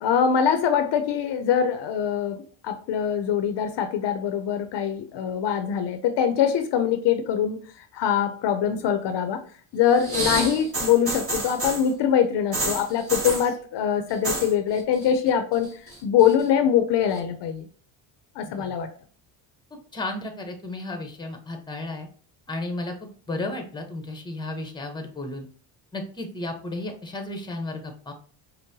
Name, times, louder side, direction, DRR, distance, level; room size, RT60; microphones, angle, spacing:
voice 1, 0.0-7.6 7.9-9.4 9.7-15.7 16.0-17.7 18.4-18.9, left 8 dB, 60° left, 8 dB, 0.6 m, -23 dB
sound 1, 9.9-11.9 12.5-13.5 14.1-14.5 14.8-15.3 15.6-16.4 17.2-17.3, right 2 dB, 30° right, 1.4 m, -29 dB
voice 2, 19.9-22.1 22.5-22.9 23.3-25.5 25.9-28.1, left 2 dB, 10° left, 4 dB, 0.8 m, -33 dB
5.3 x 2.1 x 2.7 m, 0.43 s
cardioid pair, 95°, 47 cm